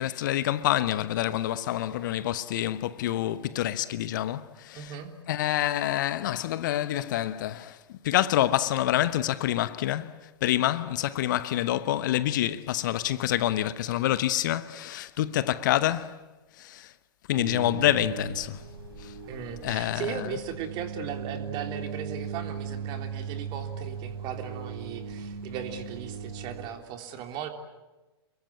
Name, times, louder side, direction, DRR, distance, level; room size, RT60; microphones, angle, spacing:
voice 1, 0.0-5.0 5.3-16.2 16.6-16.9 17.3-18.6 19.0-19.1 19.6-20.3, left 13 dB, 50° left, 1.0 m, -27 dB
voice 2, 4.7-5.1 19.3-27.5, right 8 dB, 35° right, 3.3 m, -37 dB
sound 1, 17.3-26.7, right 6 dB, 65° right, 7.8 m, -38 dB
29.0 x 22.5 x 8.4 m
figure-of-eight pair, 105°, 13 cm